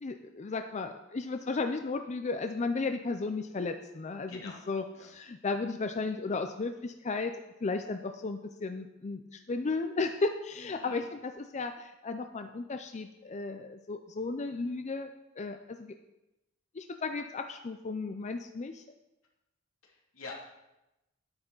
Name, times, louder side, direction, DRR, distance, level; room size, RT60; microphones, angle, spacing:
voice 1, 0.0-4.4 4.7-15.1 15.4-15.9 16.8-18.8, left 3 dB, 35° left, 6 dB, 0.5 m, -34 dB
voice 2, 4.3-4.6 4.9-5.1 10.6-11.0 19.8-20.3, left 4 dB, 85° left, -3 dB, 2.7 m, -46 dB
10.5 x 9.6 x 3.9 m, 0.96 s
head